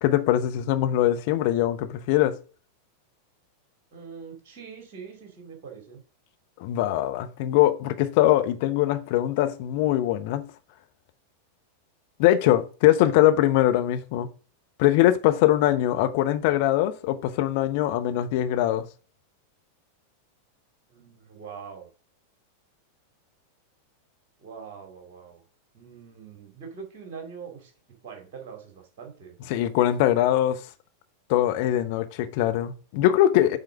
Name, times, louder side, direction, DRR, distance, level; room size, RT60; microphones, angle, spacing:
voice 1, 0.0-2.4 6.6-10.5 12.2-14.3 14.8-18.9 29.5-30.6 31.3-33.6, left 13 dB, 50° left, 0.9 m, -22 dB
voice 2, 3.9-6.0 20.9-21.9 24.4-25.4 25.7-27.7 28.0-29.4, right 6 dB, 45° right, 2.7 m, -43 dB
8.1 x 3.7 x 5.9 m
figure-of-eight pair, 90°, 0 cm